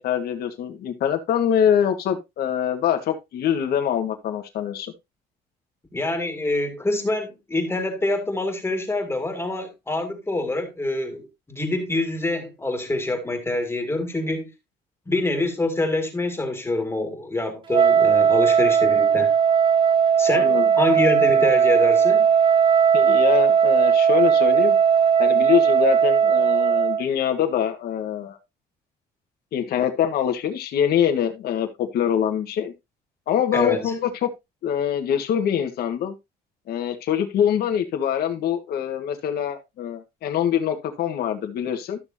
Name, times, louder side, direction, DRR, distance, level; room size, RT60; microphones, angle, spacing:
voice 1, 0.0-4.9 20.3-20.7 22.9-24.8 25.2-28.4 29.5-32.7 33.3-34.3 34.6-36.1 36.7-42.0, left 9 dB, 65° left, 1.7 m, -24 dB
voice 2, 5.9-14.5 15.1-19.3 20.2-22.3 33.5-33.9, left 2 dB, 15° left, 2.3 m, -26 dB
Wind instrument woodwind instrument, 17.7-27.1, right 7 dB, 30° right, 0.4 m, -18 dB
13.0 x 6.3 x 2.8 m
cardioid pair, 110°, 17 cm